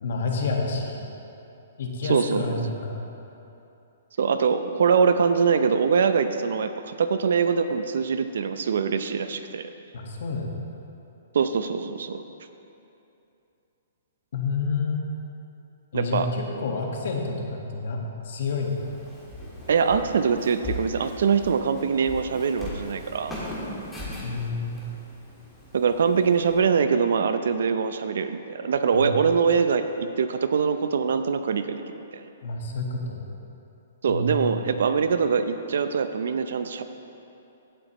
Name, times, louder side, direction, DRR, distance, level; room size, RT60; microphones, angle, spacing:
voice 1, 0.0-1.1 1.8-3.0 9.9-10.5 14.3-15.0 15.9-18.0 18.2-18.8 24.2-24.7 28.9-29.2 32.4-33.2 34.1-34.5, left 3 dB, 60° left, 0 dB, 1.6 m, -29 dB
voice 2, 2.0-2.6 4.2-9.7 11.3-12.2 15.9-16.3 19.7-23.3 25.7-32.3 34.0-36.8, right 6 dB, 70° right, 10 dB, 0.6 m, -23 dB
Walk footsteps, 18.4-26.6, left 1 dB, 5° left, 1.8 m, -39 dB
16.0 x 7.9 x 3.1 m, 2.8 s
hypercardioid pair, 160°, 0 cm